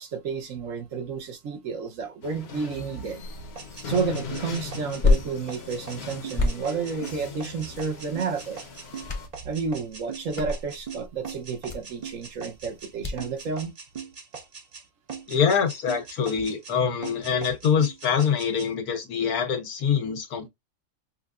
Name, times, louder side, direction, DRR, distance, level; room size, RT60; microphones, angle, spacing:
voice 1, 0.0-3.2 3.9-8.6 9.4-13.7, right 5 dB, 65° right, 1.2 m, -31 dB
sound 1, 2.2-9.3, left 5 dB, 50° left, 1.0 m, -39 dB
sound 2, 3.2-13.4, left 3 dB, 30° left, 0.7 m, -31 dB
sound 3, 3.6-12.9 13.2-14.8 15.1-16.8 17.0-18.7, right 6 dB, 45° right, 0.5 m, -40 dB
voice 2, 15.3-20.5, left 7 dB, 90° left, 1.5 m, -24 dB
5.5 x 2.2 x 2.4 m
omnidirectional pair, 1.5 m